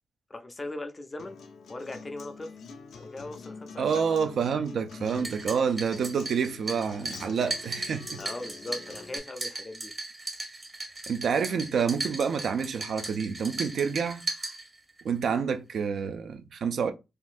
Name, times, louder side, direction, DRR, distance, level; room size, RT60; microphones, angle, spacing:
voice 1, 0.3-1.4 1.7-2.5 3.0-3.9 8.2-9.9, left 2 dB, 20° left, 0.4 m, -39 dB
Acoustic guitar, 1.2-9.2, left 5 dB, 85° left, 0.5 m, -46 dB
voice 2, 3.8-8.2 11.1-14.2 15.0-16.9, right 6 dB, 70° right, 0.4 m, -28 dB
sound 1, 5.1-15.1, right 2 dB, 20° right, 0.7 m, -37 dB
3.7 x 2.6 x 2.4 m
wide cardioid pair, 160°, 0 cm